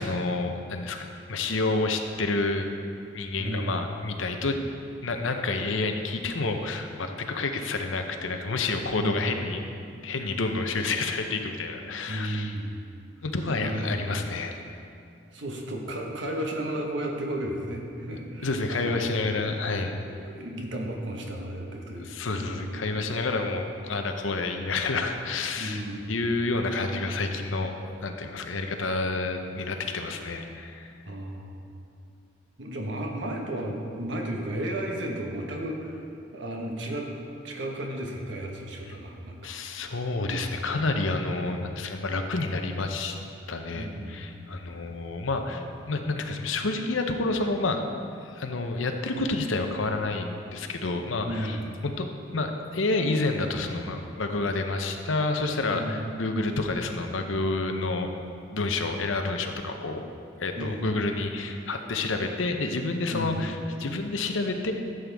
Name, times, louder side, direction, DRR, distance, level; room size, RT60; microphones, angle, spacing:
voice 1, 0.0-2.7 3.1-4.6 5.0-9.6 10.0-12.5 13.2-14.6 18.4-20.0 22.0-27.8 28.0-30.9 39.4-43.2 43.5-47.8 48.2-51.6 51.8-52.1 52.3-58.1 58.5-60.1 60.4-64.7, left 3 dB, 85° left, 5 dB, 0.8 m, -29 dB
voice 2, 3.4-3.8 8.9-9.4 12.1-12.7 13.6-14.1 15.3-19.1 20.0-22.2 22.4-23.1 25.6-26.2 31.0-31.5 32.6-36.0 36.3-37.1 37.4-39.6 41.2-41.3 43.7-44.5 51.3-51.7 55.7-56.0 60.5-60.9 63.1-63.4, right 1 dB, 65° right, 0 dB, 1.3 m, -34 dB
12.5 x 7.9 x 3.5 m, 2.5 s
head